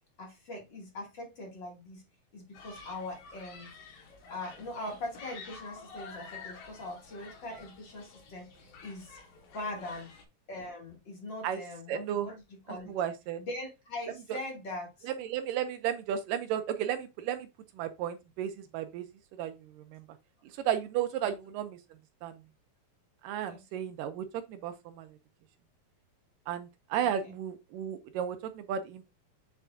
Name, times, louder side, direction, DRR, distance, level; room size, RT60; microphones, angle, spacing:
voice 1, 0.2-2.0 2.3-3.7 4.3-9.2 9.5-10.1 10.5-13.0 13.4-15.1 21.2-21.3 23.5-23.8 27.0-27.3, left 2 dB, 35° left, 2.4 m, -41 dB
Human group actions, 2.5-10.2, left 4 dB, 75° left, 3.1 m, -50 dB
voice 2, 11.9-12.3 12.9-13.4 14.3-14.4 15.2-17.5 17.8-19.1 19.4-20.0 20.7-21.8 22.2-22.4 23.2-25.1 26.5-29.1, right 9 dB, 80° right, 2.1 m, -33 dB
7.0 x 6.7 x 2.6 m
omnidirectional pair, 4.2 m